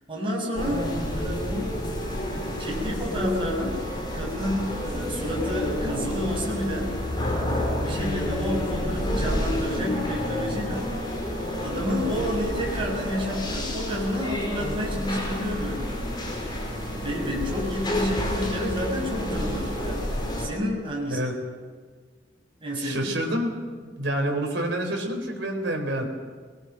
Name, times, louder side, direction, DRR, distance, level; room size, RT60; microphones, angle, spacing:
voice 1, 0.1-1.9 2.6-3.8 4.1-6.9 7.8-11.3 11.6-16.1 16.4-16.6 16.9-20.0 20.4-21.3 22.6-23.1, equal, 30° right, -2 dB, 6.2 m, -30 dB
sound 1, 0.6-20.5, left 1 dB, 25° left, 4.7 m, -29 dB
voice 2, 22.8-26.1, right 1 dB, 70° right, 3 dB, 4.1 m, -28 dB
22.0 x 20.5 x 6.6 m, 1.5 s
head